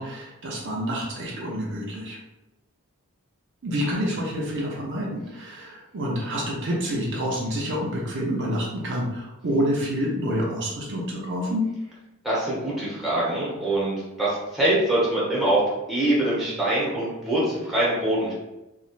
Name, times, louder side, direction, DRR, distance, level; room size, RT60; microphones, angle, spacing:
voice 1, 0.0-2.2 3.6-11.6, equal, 55° right, -3 dB, 0.6 m, -28 dB
voice 2, 12.2-15.6 15.9-18.3, right 1 dB, ahead, -8 dB, 1.0 m, -24 dB
3.0 x 2.3 x 2.4 m, 0.96 s
head